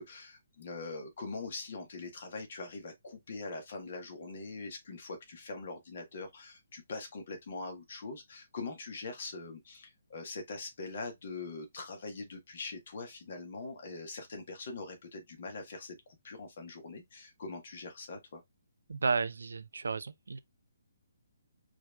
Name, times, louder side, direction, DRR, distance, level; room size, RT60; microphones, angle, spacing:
voice 1, 0.0-18.4, left 3 dB, 50° left, 1.6 m, -43 dB
voice 2, 18.9-20.4, right 4 dB, 65° right, 0.5 m, -32 dB
4.8 x 3.5 x 2.5 m
figure-of-eight pair, 135°, 0 cm